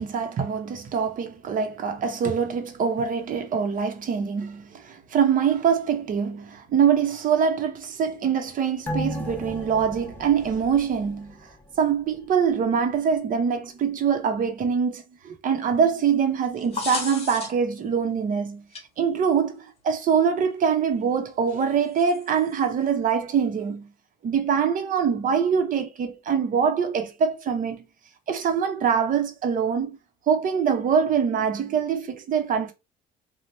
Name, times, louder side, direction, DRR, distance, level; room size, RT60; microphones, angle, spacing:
voice 1, 0.0-11.3 11.8-18.6 19.0-23.9 24.2-27.8 28.3-29.9 30.3-32.7, right 7 dB, 55° right, 1.0 m, -24 dB
sound 1, 8.9-11.8 12.1-12.2, left 1 dB, 10° left, 1.0 m, -34 dB
sound 2, 16.4-17.8 18.7-18.8 20.0-20.1 22.0-22.6, left 4 dB, 35° left, 1.1 m, -34 dB
3.1 x 2.4 x 4.1 m
cardioid pair, 110°, 17 cm